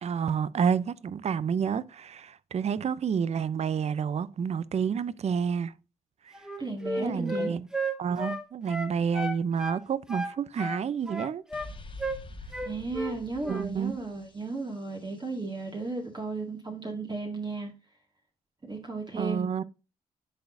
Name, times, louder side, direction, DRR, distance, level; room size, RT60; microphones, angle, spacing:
voice 1, 0.0-5.7 6.2-6.3 7.0-7.7 8.0-11.4 13.5-14.0 19.2-19.6, right 7 dB, 45° right, 0.6 m, -29 dB
Wind instrument woodwind instrument, 6.3-9.8 10.1-11.7 12.0-12.2 12.5-13.2 13.4-13.7, right 1 dB, 5° right, 1.3 m, -33 dB
voice 2, 6.6-7.6 12.6-17.7 18.6-19.5, right 3 dB, 30° right, 2.0 m, -34 dB
sound 1, 11.5-15.3, left 2 dB, 35° left, 1.2 m, -46 dB
10.0 x 4.2 x 2.6 m
supercardioid pair, 55°, 15 cm